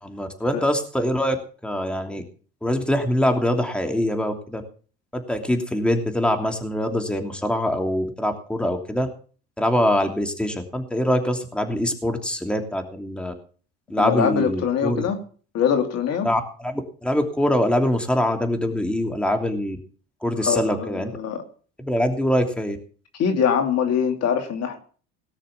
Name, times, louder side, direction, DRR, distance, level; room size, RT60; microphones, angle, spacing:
voice 1, 0.0-1.4 1.6-2.2 2.6-4.6 5.1-9.1 9.6-13.3 13.9-15.1 16.2-19.8 20.2-21.1 21.8-22.8, left 1 dB, 5° left, 4 dB, 3.0 m, -23 dB
voice 2, 14.0-15.2 15.5-16.3 20.4-21.4 23.2-24.8, left 7 dB, 55° left, 5 dB, 2.7 m, -23 dB
18.5 x 6.5 x 7.1 m, 0.41 s
hypercardioid pair, 70°, 30 cm